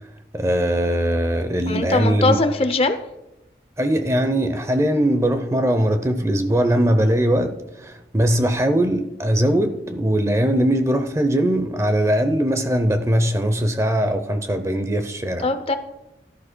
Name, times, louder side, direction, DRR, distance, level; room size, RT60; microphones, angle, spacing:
voice 1, 0.3-2.4 3.8-15.5, right 1 dB, 15° right, 0.6 m, -20 dB
voice 2, 1.7-3.0 15.4-15.8, left 3 dB, 35° left, 0.6 m, -20 dB
16.5 x 11.5 x 2.2 m
head